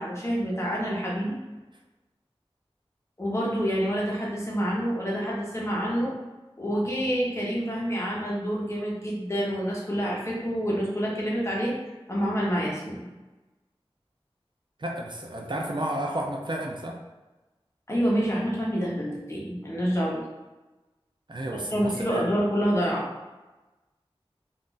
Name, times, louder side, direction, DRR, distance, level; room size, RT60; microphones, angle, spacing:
voice 1, 0.0-1.4 3.2-6.2 6.6-11.7 12.1-13.1 17.9-20.2 21.5-23.1, equal, 30° left, -5 dB, 0.9 m, -27 dB
voice 2, 14.8-17.0 21.3-22.3, right 1 dB, 50° right, 0 dB, 0.4 m, -32 dB
2.5 x 2.4 x 3.8 m, 1.1 s
wide cardioid pair, 45°, 10 cm